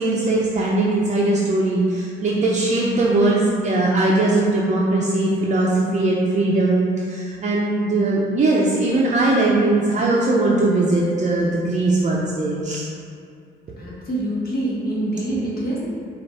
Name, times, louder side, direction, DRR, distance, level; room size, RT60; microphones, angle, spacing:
voice 1, 0.0-12.9, right 2 dB, 35° right, -4 dB, 0.6 m, -20 dB
voice 2, 13.8-15.8, right 1 dB, 50° left, -5 dB, 1.3 m, -25 dB
4.6 x 2.5 x 4.1 m, 2.3 s
cardioid pair, 90°, 20 cm